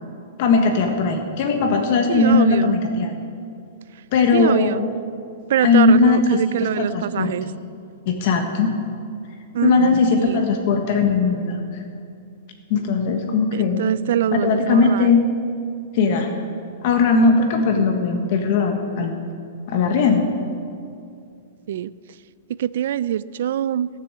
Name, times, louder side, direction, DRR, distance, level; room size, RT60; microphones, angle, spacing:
voice 1, 0.4-3.1 4.1-4.9 5.6-6.4 6.8-7.3 8.1-8.7 9.6-11.6 12.7-13.8 14.3-15.3 15.9-16.3 16.8-19.2 19.7-20.3, left 4 dB, 45° left, 4 dB, 1.3 m, -18 dB
voice 2, 2.1-2.8 4.3-4.8 5.5-7.5 9.5-10.5 13.5-15.1 21.7-21.9 22.6-23.9, right 10 dB, 60° right, 18 dB, 0.4 m, -23 dB
16.5 x 6.9 x 7.6 m, 2.4 s
hypercardioid pair, 165°, 0 cm